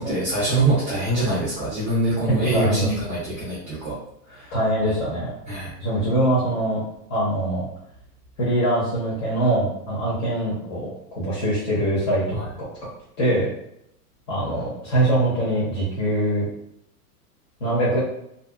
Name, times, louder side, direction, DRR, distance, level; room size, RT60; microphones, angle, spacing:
voice 1, 0.0-4.0 4.3-4.5 5.5-5.7 12.4-12.5, right 2 dB, 15° right, -8 dB, 0.5 m, -24 dB
voice 2, 2.4-2.9 4.5-5.3 5.8-7.6 8.4-12.4 13.2-13.5 14.3-16.5 17.6-18.0, right 1 dB, 50° left, -8 dB, 1.1 m, -23 dB
2.7 x 2.3 x 2.3 m, 0.76 s
supercardioid pair, 155°, 47 cm